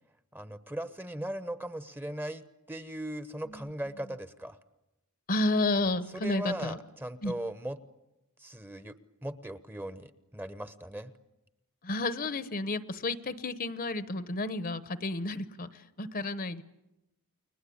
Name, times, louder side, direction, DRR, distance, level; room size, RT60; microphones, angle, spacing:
voice 1, 0.3-4.6 6.1-7.8 8.4-11.1, right 1 dB, 10° right, 12 dB, 1.0 m, -38 dB
voice 2, 5.3-6.8 7.2-7.3 11.8-16.6, left 2 dB, 40° left, 14 dB, 0.9 m, -31 dB
30.0 x 22.0 x 8.6 m, 0.94 s
head